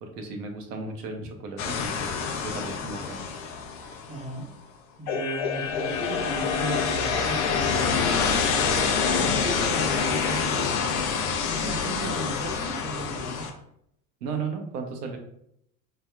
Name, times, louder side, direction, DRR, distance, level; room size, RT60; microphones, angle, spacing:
voice 1, 0.0-3.2 12.0-12.2 14.2-15.2, right 4 dB, 90° right, 3 dB, 0.7 m, -35 dB
sound 1, 1.6-4.2 5.1-13.5, left 6 dB, 65° left, 0.6 m, -27 dB
voice 2, 4.1-4.5 5.0-10.9 11.5-13.5, right 1 dB, 15° right, 0 dB, 0.6 m, -35 dB
3.3 x 2.2 x 2.3 m, 0.73 s
hypercardioid pair, 85°, 46 cm